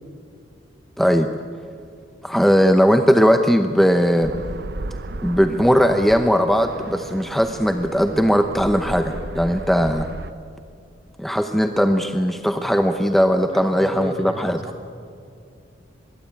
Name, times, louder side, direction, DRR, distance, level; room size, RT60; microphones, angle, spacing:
voice 1, 1.0-1.3 2.2-4.3 5.2-10.1 11.2-14.6, equal, ahead, 6 dB, 0.8 m, -18 dB
sound 1, 4.2-10.3, right 2 dB, 60° right, 0.9 m, -34 dB
voice 2, 13.5-14.9, equal, 30° right, 3 dB, 2.7 m, -34 dB
24.5 x 21.5 x 8.8 m, 2.4 s
head